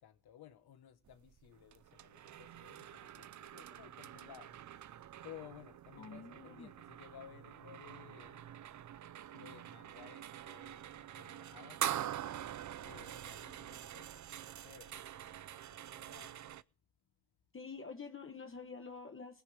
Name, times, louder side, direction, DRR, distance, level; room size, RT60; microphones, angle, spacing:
voice 1, 0.0-4.6 5.2-8.6 9.3-12.1 12.8-16.4, left 10 dB, 90° left, 1.5 m, -57 dB
sound 1, 1.0-16.6, right 11 dB, 50° right, 0.5 m, -45 dB
voice 2, 6.0-6.7 17.5-19.4, left 4 dB, 35° left, 1.3 m, -48 dB
19.5 x 10.0 x 3.5 m
cardioid pair, 110°, 37 cm